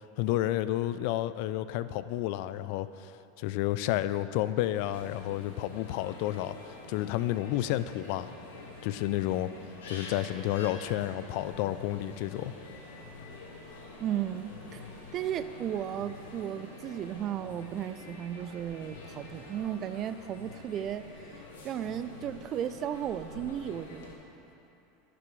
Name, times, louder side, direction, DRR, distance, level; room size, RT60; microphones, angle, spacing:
voice 1, 0.2-3.1 3.4-6.5 6.9-8.3 8.8-9.5 9.9-12.5, left 14 dB, 65° left, 14 dB, 0.3 m, -31 dB
sound 1, 4.7-24.1, left 3 dB, 85° left, 1.6 m, -47 dB
voice 2, 14.0-14.8 15.1-21.1 21.6-24.1, right 10 dB, 40° right, 12 dB, 0.4 m, -35 dB
16.5 x 6.0 x 3.2 m, 2.9 s
supercardioid pair, 110°, 0 cm